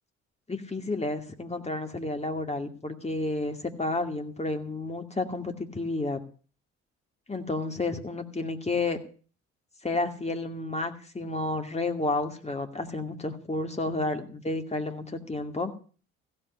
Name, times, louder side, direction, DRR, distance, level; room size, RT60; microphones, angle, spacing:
voice 1, 0.5-6.2 7.3-9.0 9.8-15.7, left 2 dB, 20° left, 6 dB, 2.3 m, -31 dB
15.5 x 5.4 x 9.8 m, 0.40 s
hypercardioid pair, 50°, 35 cm